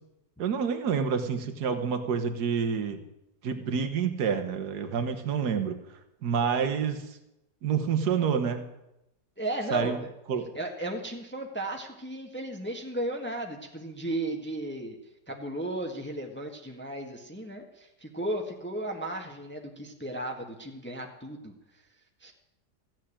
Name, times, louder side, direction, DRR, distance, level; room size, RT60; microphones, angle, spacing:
voice 1, 0.4-3.0 3.4-5.8 6.2-7.2 7.6-8.6 9.7-10.0 10.3-10.4, right 6 dB, 75° right, 7 dB, 1.7 m, -28 dB
voice 2, 9.4-10.1 10.5-15.0 15.3-21.5 22.2-22.3, right 1 dB, 5° left, 2 dB, 1.4 m, -35 dB
15.5 x 7.5 x 10.0 m, 0.88 s
omnidirectional pair, 1.7 m